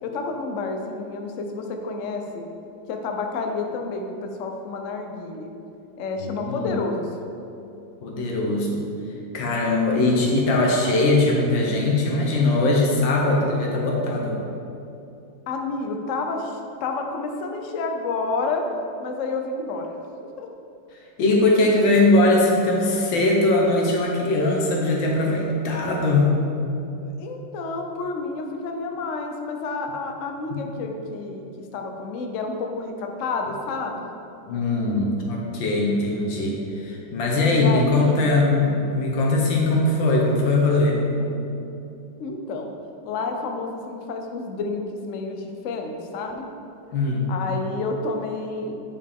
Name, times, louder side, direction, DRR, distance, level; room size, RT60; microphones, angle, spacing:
voice 1, 0.0-2.4 2.9-5.5 6.0-7.0 15.5-18.6 19.0-19.9 20.4-20.5 27.0-34.0 37.5-38.3 40.9-41.7 42.2-42.7 43.0-46.4 47.3-48.8, left 3 dB, 65° left, 3 dB, 0.8 m, -30 dB
voice 2, 6.2-6.7 8.0-8.8 9.3-14.4 21.2-26.4 30.5-30.6 34.5-41.0 46.9-47.3, left 2 dB, 85° left, -2 dB, 1.8 m, -21 dB
8.9 x 5.2 x 3.5 m, 2.8 s
omnidirectional pair, 2.0 m